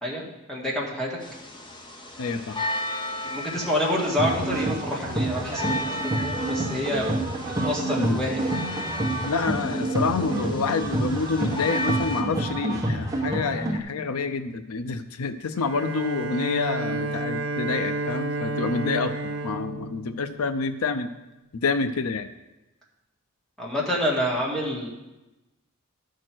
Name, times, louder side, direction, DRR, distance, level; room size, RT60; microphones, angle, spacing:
voice 1, 0.0-1.2 3.2-7.1 7.6-8.6 23.6-24.9, equal, 5° left, -4 dB, 1.8 m, -28 dB
sound 1, 1.2-12.2, left 1 dB, 20° left, 0.8 m, -35 dB
voice 2, 2.2-2.6 8.0-8.2 9.2-21.1 21.5-22.3, left 4 dB, 85° left, 10 dB, 0.5 m, -28 dB
sound 2, 4.2-13.8, right 2 dB, 15° right, 1.0 m, -28 dB
Bowed string instrument, 15.6-20.8, right 2 dB, 90° right, 0.8 m, -31 dB
12.0 x 4.7 x 6.0 m, 1.0 s
head